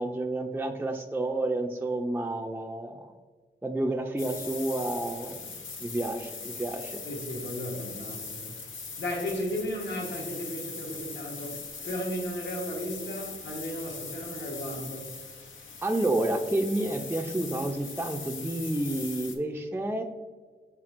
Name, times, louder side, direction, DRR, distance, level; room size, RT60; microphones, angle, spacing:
voice 1, 0.0-3.1 3.6-5.4 5.8-7.0 15.8-20.0, right 1 dB, 10° right, 3 dB, 0.4 m, -30 dB
sound 1, 4.2-19.4, left 5 dB, 85° left, 0.6 m, -40 dB
voice 2, 7.0-8.6 9.0-15.2, equal, 70° left, -1 dB, 1.2 m, -35 dB
6.0 x 3.5 x 2.5 m, 1.4 s
cardioid pair, 50°, 20 cm